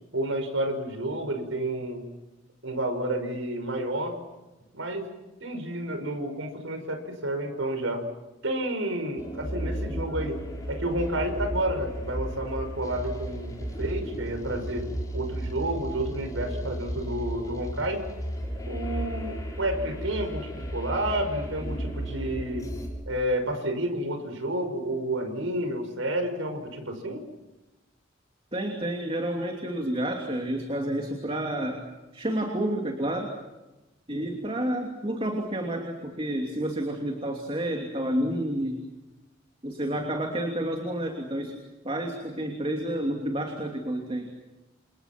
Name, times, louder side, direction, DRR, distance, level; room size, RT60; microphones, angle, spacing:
voice 1, 0.1-2.0 2.6-4.2 4.7-5.1 5.4-8.0 8.4-10.4 10.7-14.9 15.1-18.0 18.7-22.7 23.1-27.2, right 1 dB, 75° right, 6 dB, 5.9 m, -30 dB
sound 1, 9.2-22.9, equal, 15° left, 6.4 m, -34 dB
voice 2, 28.5-31.8 32.1-33.3 34.1-38.8 39.6-41.5 41.8-44.3, right 1 dB, 25° right, 2 dB, 2.9 m, -30 dB
30.0 x 28.0 x 6.1 m, 1.1 s
head